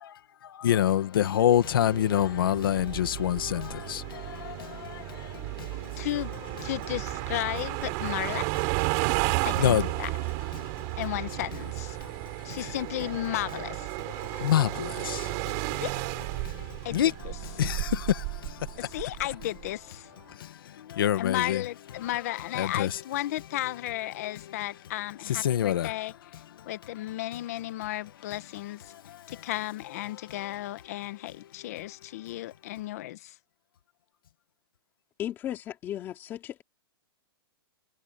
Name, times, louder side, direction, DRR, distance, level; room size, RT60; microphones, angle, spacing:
voice 1, 0.6-5.7 9.6-9.8 14.2-15.8 16.4-17.1 17.6-18.6 20.4-20.5 20.9-21.6 22.6-22.9 25.4-25.9, left 11 dB, 65° left, 1.9 m, -26 dB
sound 1, 1.6-19.7, right 30 dB, 30° right, 6.2 m, -33 dB
voice 2, 6.0-6.3 6.6-8.5 9.4-10.1 11.0-12.0 12.4-13.9 15.8-15.9 16.8-17.4 18.8-20.1 21.2-26.1 26.7-28.9 29.3-33.3, left 15 dB, 40° left, 1.1 m, -34 dB
voice 3, 35.2-36.6, left 11 dB, 15° left, 2.7 m, -35 dB
supercardioid pair, 175°, 13 cm